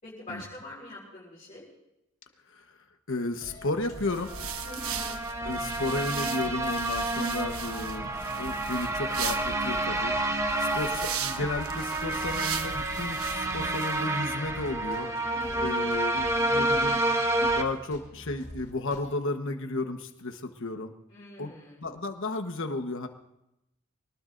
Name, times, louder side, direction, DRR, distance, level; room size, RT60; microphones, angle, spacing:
voice 1, 0.0-1.7 4.6-5.2 10.5-11.0 15.2-15.8 21.1-21.9, left 1 dB, 35° left, -8 dB, 4.6 m, -45 dB
voice 2, 3.1-4.3 5.4-10.1 10.6-15.1 15.6-17.0 17.4-20.9 21.4-21.5 21.8-23.1, left 2 dB, 65° left, 6 dB, 1.2 m, -33 dB
sound 1, 3.4-19.2, left 1 dB, 50° left, 3.2 m, -47 dB
sound 2, 3.9-14.1, right 7 dB, 80° right, 1.1 m, -38 dB
sound 3, 4.3-17.6, right 2 dB, 15° right, 1.0 m, -29 dB
24.5 x 19.0 x 2.6 m, 0.88 s
head